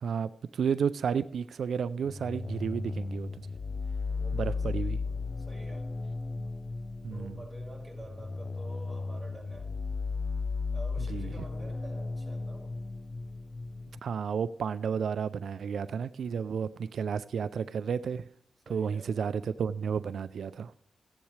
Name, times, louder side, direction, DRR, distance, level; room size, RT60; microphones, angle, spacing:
voice 1, 0.0-3.5 4.3-5.0 7.0-7.3 11.1-11.3 14.0-18.2 18.7-20.7, right 6 dB, 85° right, 14 dB, 0.3 m, -32 dB
sound 1, 2.0-14.0, left 4 dB, 45° left, 0.4 m, -35 dB
voice 2, 4.1-5.9 7.1-9.8 10.7-12.8 18.6-19.1, right 1 dB, 10° right, -2 dB, 4.8 m, -49 dB
15.0 x 10.0 x 3.2 m, 0.69 s
wide cardioid pair, 95°, 0 cm